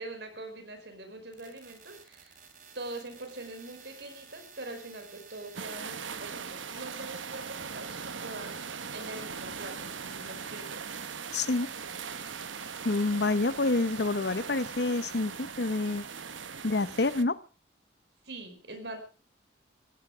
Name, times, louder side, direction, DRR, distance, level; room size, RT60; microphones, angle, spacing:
voice 1, 0.0-2.4 2.7-11.0 18.2-19.0, right 2 dB, 65° right, 5.2 m, -43 dB
sound 1, 1.3-16.5, right 6 dB, 45° right, 3.2 m, -53 dB
sound 2, 5.5-17.2, right 6 dB, 90° right, 1.2 m, -40 dB
voice 2, 11.3-11.7 12.8-16.0 16.6-17.4, left 2 dB, 60° left, 0.9 m, -28 dB
17.5 x 15.5 x 5.0 m
head